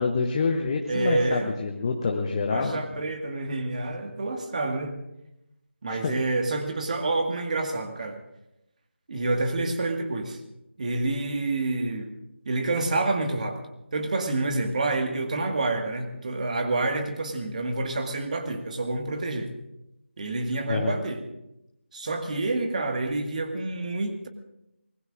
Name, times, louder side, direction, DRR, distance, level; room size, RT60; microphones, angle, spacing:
voice 1, 0.0-2.8 5.9-6.2 20.7-21.0, left 4 dB, 25° left, 2 dB, 1.0 m, -27 dB
voice 2, 0.9-1.5 2.5-4.9 5.8-8.2 9.1-10.4 10.8-12.1 12.5-13.6 13.9-19.5 20.2-21.2 21.9-24.3, right 2 dB, 35° right, 5 dB, 1.8 m, -28 dB
25.5 x 20.0 x 2.6 m, 0.87 s
figure-of-eight pair, 160°, 7 cm